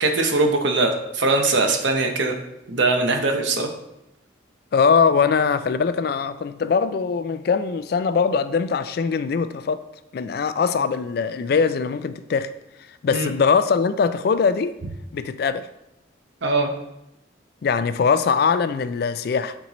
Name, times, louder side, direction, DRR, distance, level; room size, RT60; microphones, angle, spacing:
voice 1, 0.0-2.3 2.7-3.7 13.1-13.3 16.4-16.7, right 3 dB, 75° right, 0.9 m, -21 dB
voice 2, 4.7-9.8 10.1-12.5 13.0-14.7 15.1-15.7 17.6-19.6, left 5 dB, 55° left, 0.3 m, -21 dB
8.4 x 4.4 x 3.0 m
head